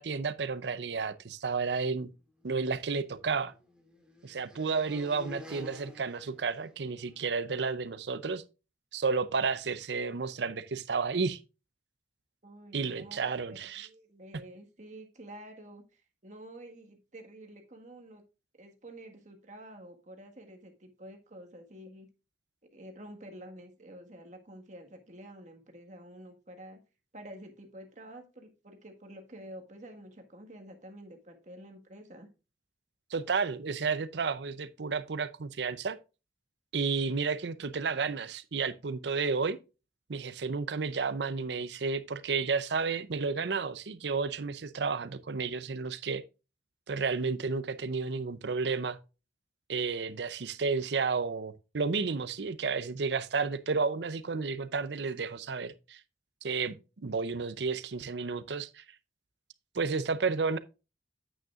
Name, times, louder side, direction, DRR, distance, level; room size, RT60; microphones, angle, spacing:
voice 1, 0.0-2.1 2.4-3.5 4.2-8.4 8.9-11.4 12.7-13.9 33.1-36.0 36.7-39.6 40.1-46.2 46.9-49.0 49.7-56.0 56.4-56.7 57.0-58.8 59.7-60.6, right 4 dB, 75° right, 0.6 m, -32 dB
sound 1, 2.8-7.2, left 1 dB, 5° right, 2.0 m, -50 dB
voice 2, 12.4-18.2 18.6-22.1 22.7-26.8 27.1-32.3, right 1 dB, 45° right, 1.6 m, -49 dB
9.1 x 8.8 x 2.4 m
head